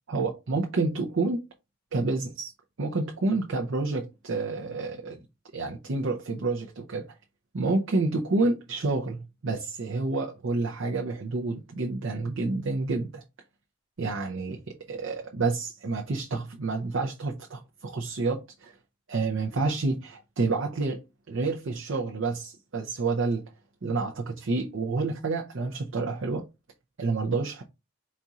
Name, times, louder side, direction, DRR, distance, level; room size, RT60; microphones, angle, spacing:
voice 1, 0.1-1.4 1.9-2.5 2.8-5.2 5.5-7.1 7.5-13.2 14.0-18.7 19.1-21.0 21.3-23.4 23.8-26.5 27.0-27.6, right 3 dB, 60° right, 0.6 m, -29 dB
4.2 x 2.4 x 4.0 m
head